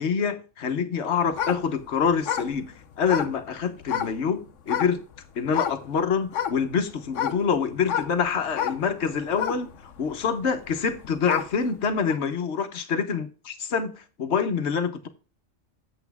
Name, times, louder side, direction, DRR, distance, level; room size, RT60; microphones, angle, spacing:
voice 1, 0.0-5.0 5.4-15.1, left 6 dB, 65° left, 1.3 m, -26 dB
sound 1, 1.3-4.2 4.7-5.2 5.5-5.9 6.3-11.6 12.1-12.2, left 9 dB, 90° left, 1.1 m, -30 dB
8.3 x 7.4 x 3.4 m
omnidirectional pair, 1.2 m